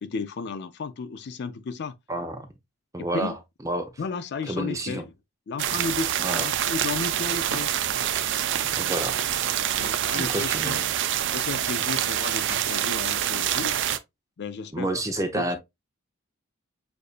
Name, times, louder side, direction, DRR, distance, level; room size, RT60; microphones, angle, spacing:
voice 1, 0.0-2.0 3.0-3.4 4.0-5.1 5.5-7.7 9.6-10.9 11.3-13.8 14.4-14.9 15.2-15.6, left 4 dB, 50° left, 0.4 m, -33 dB
voice 2, 2.1-2.5 2.9-3.3 3.6-3.9 4.4-5.1 6.2-6.5 8.8-9.2 10.1-10.9 14.7-15.6, right 1 dB, 15° right, 0.7 m, -29 dB
sound 1, 5.6-14.0, right 10 dB, 55° right, 0.5 m, -26 dB
6.5 x 2.6 x 2.4 m
head